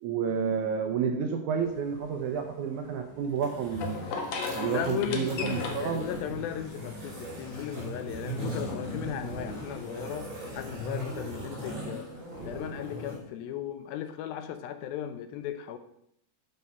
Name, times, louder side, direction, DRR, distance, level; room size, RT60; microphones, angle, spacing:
voice 1, 0.0-4.0 4.6-6.1, right 7 dB, 80° right, 5 dB, 1.8 m, -30 dB
sound 1, 1.6-10.2, left 4 dB, 65° left, 1.8 m, -40 dB
sound 2, 3.3-13.2, right 1 dB, 60° right, 5.2 m, -39 dB
voice 2, 4.7-12.1 12.5-15.8, left 10 dB, 80° left, 10 dB, 2.5 m, -36 dB
11.0 x 4.8 x 5.5 m, 0.76 s
omnidirectional pair, 4.2 m